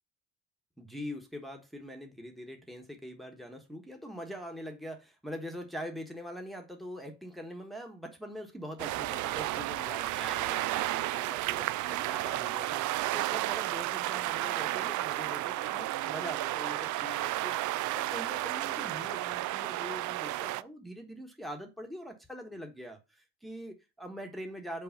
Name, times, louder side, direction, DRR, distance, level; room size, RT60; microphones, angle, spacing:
voice 1, 0.8-17.6 17.9-24.8, equal, ahead, 1.3 m, -43 dB
sound 1, 8.8-20.6, right 16 dB, 70° right, 0.4 m, -32 dB
5.5 x 4.8 x 5.7 m
cardioid pair, 105°, 30 cm